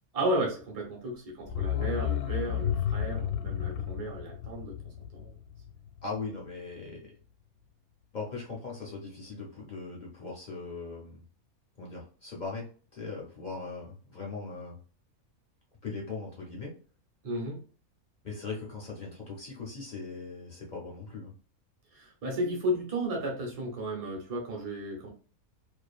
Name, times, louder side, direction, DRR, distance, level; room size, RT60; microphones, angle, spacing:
voice 1, 0.1-4.8 5.1-5.4 17.2-17.6 21.9-25.1, right 1 dB, 35° right, 0 dB, 0.7 m, -33 dB
sound 1, 1.5-6.2 6.5-6.6, left 9 dB, 85° left, 1.1 m, -32 dB
voice 2, 6.0-7.1 8.1-11.2 11.8-14.8 15.8-16.7 18.2-21.3, left 4 dB, 50° left, -3 dB, 0.5 m, -39 dB
2.5 x 2.4 x 2.3 m, 0.40 s
omnidirectional pair, 1.5 m